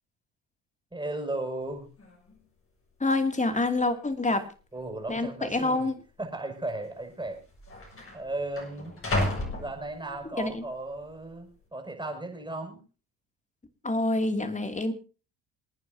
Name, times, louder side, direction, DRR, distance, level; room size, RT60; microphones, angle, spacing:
voice 1, 0.9-1.9 4.7-5.9 6.2-7.4 8.1-8.9 9.5-12.8, right 2 dB, 10° right, 3 dB, 6.5 m, -35 dB
sound 1, 1.6-1.7 2.0-2.4 3.1-3.2 4.0-4.5 4.7-4.9 5.7-5.9 6.9-7.0 7.2-10.4 10.9-11.3, left 1 dB, 30° left, 6.9 m, -34 dB
voice 2, 3.0-4.5 5.1-5.9 10.4-10.6 13.8-14.9, left 2 dB, 15° left, 8 dB, 2.6 m, -27 dB
28.0 x 9.5 x 2.8 m, 0.36 s
hypercardioid pair, 70°, 41 cm